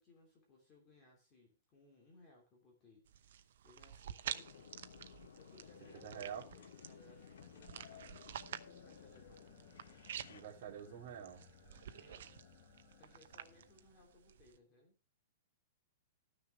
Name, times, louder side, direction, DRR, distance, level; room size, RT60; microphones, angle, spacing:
voice 1, 0.0-4.7 5.3-9.6 11.9-12.5 13.0-15.0, left 2 dB, 20° left, 2.9 m, -65 dB
sound 1, 3.1-14.6, right 9 dB, 55° right, 0.8 m, -50 dB
sound 2, 3.8-14.4, left 8 dB, 35° left, 2.0 m, -64 dB
sound 3, 4.3-10.4, left 8 dB, 90° left, 1.1 m, -58 dB
voice 2, 5.9-6.4 10.3-11.4, right 9 dB, 35° right, 2.9 m, -47 dB
13.0 x 6.6 x 4.7 m
hypercardioid pair, 180°, 0 cm